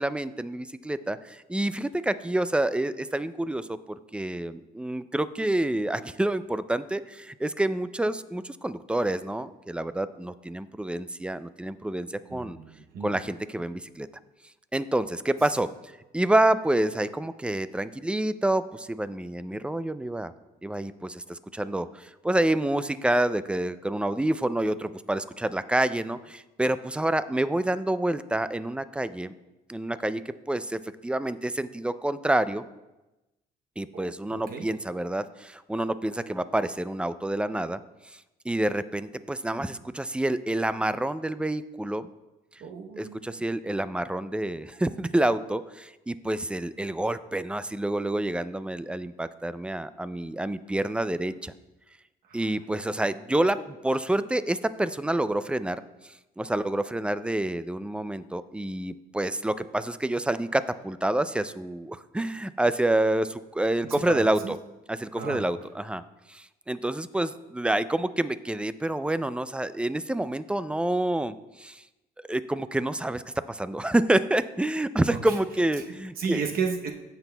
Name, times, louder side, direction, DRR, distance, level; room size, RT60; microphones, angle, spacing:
voice 1, 0.0-12.6 13.0-14.1 14.7-15.7 16.1-20.3 20.6-29.3 29.7-32.6 33.8-37.8 38.5-42.1 43.0-51.5 52.3-55.8 56.4-64.6 64.9-66.0 66.3-71.8 72.2-73.2 73.5-76.4, right 1 dB, 5° right, 14 dB, 0.3 m, -28 dB
voice 2, 12.3-13.1 33.9-34.6 42.6-43.2 52.3-52.4 63.9-64.5 65.1-65.4 75.1-75.2 76.2-76.9, right 5 dB, 60° right, 3 dB, 0.8 m, -33 dB
15.0 x 6.0 x 2.2 m, 1.0 s
cardioid pair, 110°, 17 cm